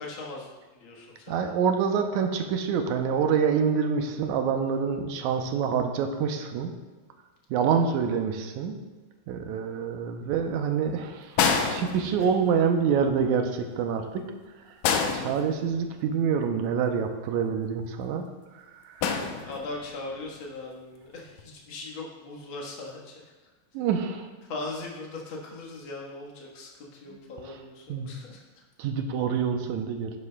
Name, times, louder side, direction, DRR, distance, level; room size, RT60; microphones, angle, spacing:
voice 1, 0.0-1.5 19.5-23.3 24.4-28.6, left 2 dB, 50° left, -2 dB, 1.8 m, -39 dB
voice 2, 1.3-6.7 7.5-8.8 9.3-14.2 14.7-14.8 15.1-18.3 18.5-19.2 23.7-24.3 27.1-27.2 27.5-27.6 27.9-28.1 28.8-30.1, right 6 dB, 85° right, 5 dB, 2.1 m, -26 dB
sound 1, 11.4-12.6 14.8-16.1 19.0-19.9 21.2-21.4, left 6 dB, 80° left, 2.0 m, -28 dB
11.0 x 9.5 x 2.2 m, 1.2 s
omnidirectional pair, 3.4 m